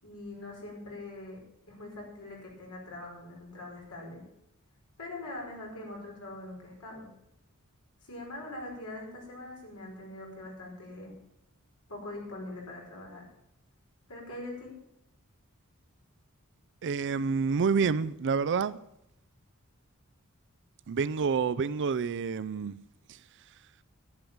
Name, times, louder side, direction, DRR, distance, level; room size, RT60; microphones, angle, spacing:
voice 1, 0.0-1.4 1.7-4.2 5.0-7.1 8.0-11.1 11.9-13.3 14.1-14.8, left 2 dB, 85° left, 5.2 m, -42 dB
voice 2, 16.8-18.8 20.9-22.8 23.1-23.2, right 5 dB, 55° right, 0.4 m, -28 dB
11.0 x 10.0 x 7.1 m
head